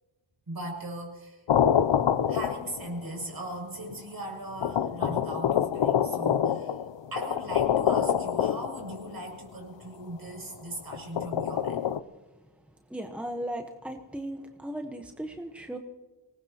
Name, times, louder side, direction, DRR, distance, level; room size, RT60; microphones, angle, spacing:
voice 1, 0.5-1.4 2.3-11.8, right 1 dB, 50° right, 0 dB, 6.8 m, -39 dB
sound 1, 1.5-3.0 3.9-4.0 4.6-9.1 10.9-12.0, left 9 dB, 70° left, 0.6 m, -26 dB
voice 2, 12.9-15.8, right 1 dB, 5° right, 4 dB, 1.1 m, -36 dB
25.0 x 19.5 x 3.0 m, 1.2 s
wide cardioid pair, 90°, 45 cm